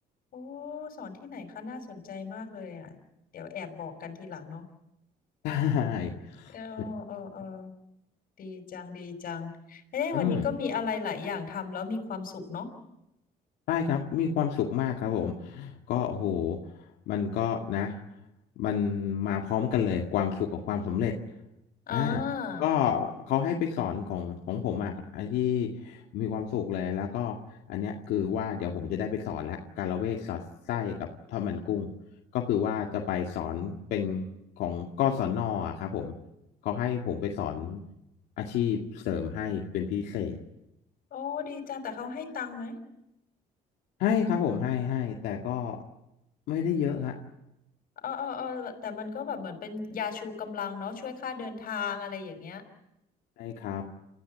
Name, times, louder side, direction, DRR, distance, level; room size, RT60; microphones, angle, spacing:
voice 1, 0.3-3.0 3.3-4.7 6.5-7.7 8.4-12.8 21.9-22.7 41.1-42.8 48.0-52.7, left 6 dB, 60° left, 7 dB, 5.8 m, -35 dB
voice 2, 5.4-6.5 10.1-10.4 13.7-16.6 17.1-18.0 18.6-21.1 21.9-22.2 22.6-27.3 27.7-30.4 30.7-31.9 32.3-34.3 34.6-36.1 36.6-37.8 38.4-40.4 44.0-45.8 46.5-47.1 53.4-53.8, left 8 dB, 80° left, 0 dB, 2.3 m, -29 dB
29.5 x 15.0 x 9.9 m, 0.88 s
cardioid pair, 110°, 17 cm